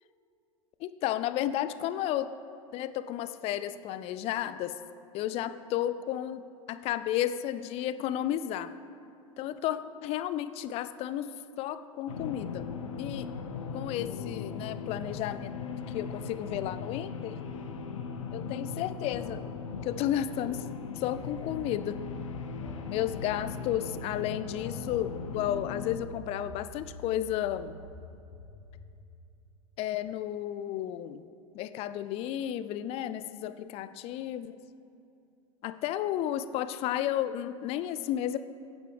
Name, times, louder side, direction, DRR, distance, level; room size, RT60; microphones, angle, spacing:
voice 1, 0.8-2.3 2.7-4.8 5.1-8.7 9.4-11.3 11.6-12.7 13.0-13.3 13.7-15.5 15.9-17.4 18.3-19.4 19.8-20.6 21.0-22.0 22.9-27.8 29.8-31.2 31.5-34.6 35.6-38.4, left 12 dB, 35° left, 13 dB, 0.4 m, -32 dB
sound 1, 12.1-26.0, left 5 dB, 70° left, 0.7 m, -38 dB
sound 2, 21.2-28.8, right 1 dB, 80° right, 1.4 m, -47 dB
11.5 x 9.1 x 3.3 m, 2.7 s
figure-of-eight pair, 80°, 17 cm